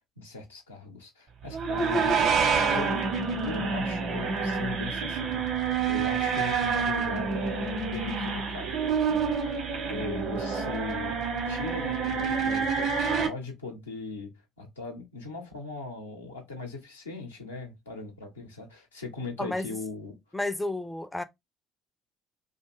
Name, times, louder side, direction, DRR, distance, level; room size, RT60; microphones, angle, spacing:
voice 1, 0.2-2.0 2.7-3.1 3.4-9.6 9.9-11.2 11.5-20.2, left 3 dB, 90° left, 0.7 m, -39 dB
sound 1, 1.5-13.3, right 5 dB, 60° right, 0.9 m, -28 dB
voice 2, 20.3-21.2, left 2 dB, 10° left, 0.4 m, -31 dB
2.5 x 2.3 x 3.0 m
hypercardioid pair, 55°, 0 cm